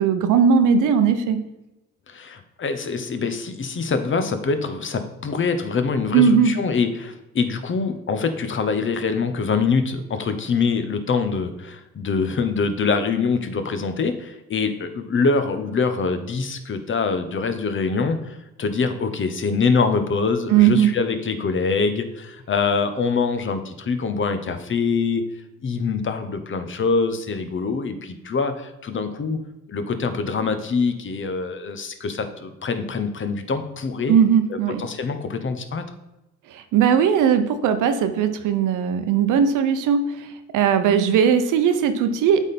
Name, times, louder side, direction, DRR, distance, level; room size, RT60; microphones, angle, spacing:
voice 1, 0.0-1.4 6.1-6.6 20.5-20.9 34.1-34.8 36.5-42.4, right 7 dB, 85° right, 9 dB, 0.7 m, -18 dB
voice 2, 2.1-25.2 25.6-29.4 29.7-34.2 34.8-35.8, left 4 dB, 40° left, 9 dB, 0.8 m, -24 dB
8.1 x 3.6 x 4.2 m, 0.95 s
cardioid pair, 90°, 30 cm